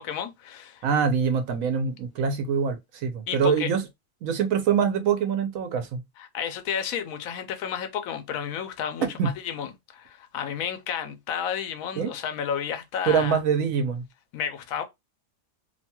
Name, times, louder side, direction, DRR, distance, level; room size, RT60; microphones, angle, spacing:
voice 1, 0.0-0.8 3.3-3.7 6.2-13.4 14.3-14.8, left 8 dB, 90° left, 1.0 m, -32 dB
voice 2, 0.8-3.8 4.2-6.0 9.2-9.3 12.0-12.1 13.1-14.0, right 6 dB, 85° right, 1.1 m, -24 dB
2.8 x 2.2 x 2.8 m
omnidirectional pair, 1.4 m